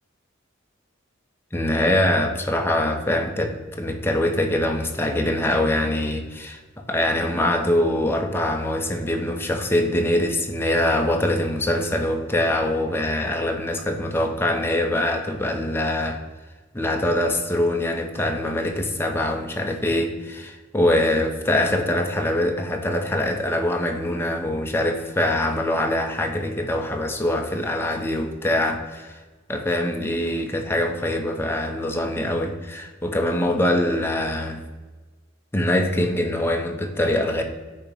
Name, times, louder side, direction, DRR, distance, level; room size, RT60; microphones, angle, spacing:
voice 1, 1.5-6.6 6.9-16.2 16.7-29.2 29.5-34.6 35.5-37.4, left 1 dB, 10° left, 3 dB, 0.7 m, -23 dB
8.7 x 2.9 x 5.3 m, 1.3 s
head